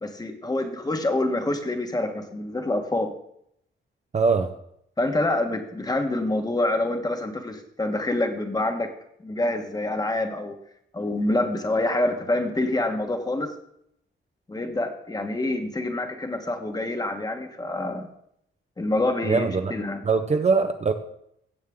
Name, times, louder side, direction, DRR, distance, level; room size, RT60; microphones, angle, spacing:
voice 1, 0.0-3.1 5.0-8.9 9.2-10.6 10.9-13.5 14.5-18.1 18.8-20.0, left 2 dB, 20° left, 5 dB, 1.2 m, -26 dB
voice 2, 4.1-4.5 19.2-19.7 20.0-20.9, right 4 dB, 30° right, 7 dB, 0.6 m, -22 dB
16.0 x 7.3 x 3.6 m, 0.73 s
wide cardioid pair, 140°, 21 cm